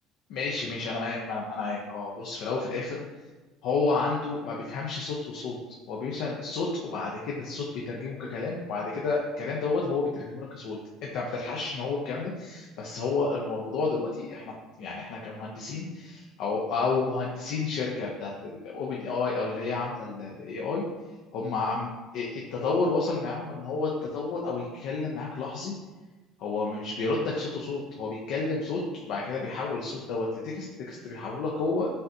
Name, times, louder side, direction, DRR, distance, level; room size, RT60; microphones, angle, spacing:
voice 1, 0.3-3.0 3.6-5.6 5.9-10.8 11.1-14.5 14.8-20.9 21.3-25.7 26.4-31.9, left 3 dB, 60° left, -3 dB, 0.6 m, -31 dB
5.4 x 2.7 x 2.7 m, 1.2 s
cardioid pair, 145°, 0 cm